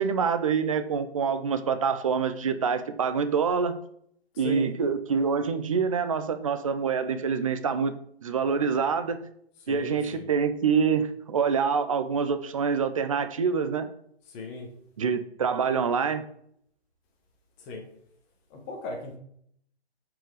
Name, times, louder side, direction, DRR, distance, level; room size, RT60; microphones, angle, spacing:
voice 1, 0.0-3.7 4.4-7.9 8.2-9.2 9.7-13.9 15.0-16.2, right 6 dB, 35° right, 10 dB, 0.6 m, -26 dB
voice 2, 4.3-4.7 9.6-10.3 14.3-14.7 17.6-17.8 18.5-19.2, left 3 dB, 20° left, 2 dB, 1.4 m, -38 dB
7.6 x 4.8 x 4.8 m, 0.68 s
hypercardioid pair, 150°, 31 cm